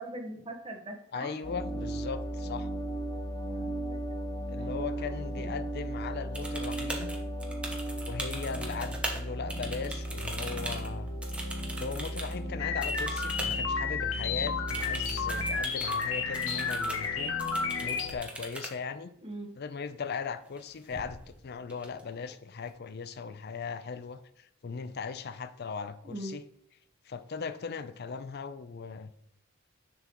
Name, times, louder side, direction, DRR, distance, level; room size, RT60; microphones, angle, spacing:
voice 1, 0.0-1.4 3.5-4.0 4.6-5.5 16.5-16.7 19.2-19.5 26.0-26.3, right 1 dB, 30° right, 3 dB, 1.2 m, -42 dB
voice 2, 1.1-2.7 4.5-7.2 8.1-11.1 11.8-17.3 17.8-19.1 19.6-26.4 27.1-29.2, left 5 dB, 55° left, 12 dB, 0.5 m, -38 dB
sound 1, 1.4-18.2, right 1 dB, 20° left, 1.1 m, -36 dB
sound 2, 6.3-9.2 9.5-12.3 12.8-13.6 13.8-13.9 14.7-16.1 16.3-17.1 17.4-18.7 20.4-20.6 20.9-21.4 21.7-22.3, right 1 dB, 5° right, 1.0 m, -40 dB
sound 3, 12.6-18.1, left 5 dB, 85° left, 0.9 m, -32 dB
7.0 x 6.9 x 3.0 m, 0.73 s
head